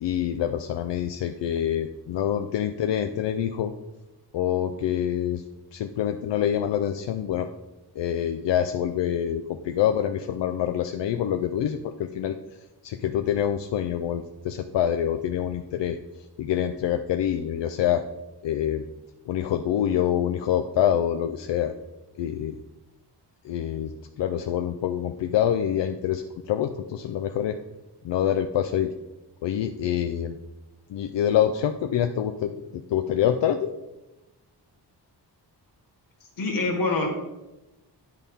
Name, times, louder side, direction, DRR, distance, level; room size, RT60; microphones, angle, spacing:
voice 1, 0.0-3.7 4.3-5.4 5.7-7.5 8.0-12.4 12.8-16.0 16.4-18.0 18.4-18.8 19.3-21.7 22.2-22.6 23.4-27.6 28.0-28.9 29.4-30.4 30.9-33.7, left 10 dB, 85° left, 6 dB, 0.5 m, -26 dB
voice 2, 36.4-37.1, left 3 dB, 50° left, 2 dB, 1.6 m, -25 dB
11.0 x 4.2 x 3.5 m, 1.0 s
wide cardioid pair, 135°, 42 cm